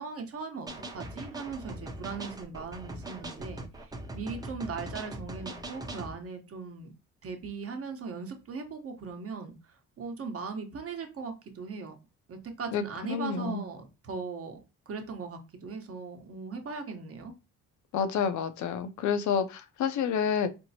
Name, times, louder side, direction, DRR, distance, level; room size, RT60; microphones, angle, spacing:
voice 1, 0.0-6.9 7.2-11.9 12.3-14.6 14.9-17.3, right 5 dB, 45° right, 0.9 m, -39 dB
sound 1, 0.7-6.2, right 1 dB, 10° right, 0.6 m, -41 dB
voice 2, 12.7-13.6 17.9-20.5, left 7 dB, 60° left, 0.6 m, -29 dB
4.4 x 2.0 x 2.7 m
cardioid pair, 80°, 33 cm